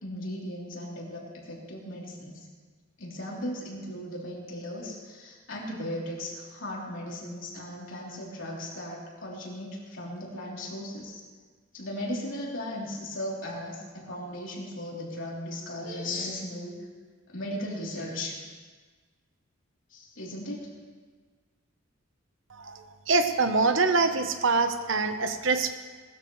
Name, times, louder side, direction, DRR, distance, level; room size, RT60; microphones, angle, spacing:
voice 1, 0.0-2.5 3.0-11.2 11.7-16.8 17.3-18.3 19.9-20.7, left 1 dB, 65° left, -4 dB, 3.5 m, -37 dB
voice 2, 23.1-25.7, right 3 dB, 70° right, 7 dB, 1.0 m, -24 dB
20.0 x 13.5 x 3.2 m, 1.5 s
head